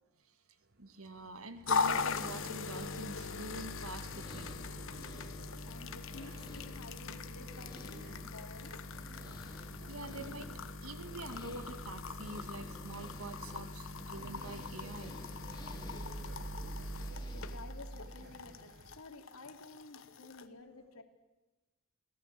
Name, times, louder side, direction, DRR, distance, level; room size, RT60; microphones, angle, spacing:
sound 1, 0.7-19.0, right 2 dB, 45° right, 1.0 m, -50 dB
voice 1, 0.8-4.7 9.9-10.5 10.8-15.2, right 2 dB, 75° right, 9 dB, 2.0 m, -46 dB
sound 2, 1.6-17.6, left 1 dB, 20° left, 2.2 m, -54 dB
sound 3, 1.7-20.5, left 4 dB, 60° left, 1.2 m, -41 dB
voice 2, 5.6-8.8 17.0-21.0, left 3 dB, 80° left, 5 dB, 2.9 m, -52 dB
27.0 x 17.5 x 8.3 m, 1.1 s
head